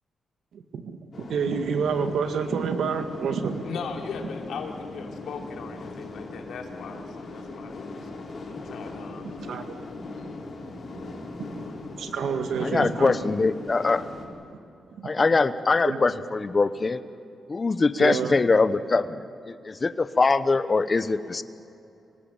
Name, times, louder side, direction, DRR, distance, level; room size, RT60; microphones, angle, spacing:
voice 1, 0.5-3.7 9.4-9.8 10.6-10.7 11.4-11.6 12.0-13.2 15.0-15.1 15.9-16.0 18.0-18.4, right 6 dB, 75° right, 7 dB, 1.9 m, -28 dB
sound 1, 1.1-14.2, left 2 dB, 45° left, 4.8 m, -39 dB
voice 2, 3.6-8.1 8.6-9.3 10.2-10.3, left 5 dB, 75° left, 2 dB, 3.0 m, -38 dB
voice 3, 12.6-14.1 15.0-17.0 17.5-21.4, left 3 dB, 30° left, 13 dB, 0.9 m, -23 dB
26.0 x 18.5 x 8.9 m, 2.7 s
cardioid pair, 95°, 0 cm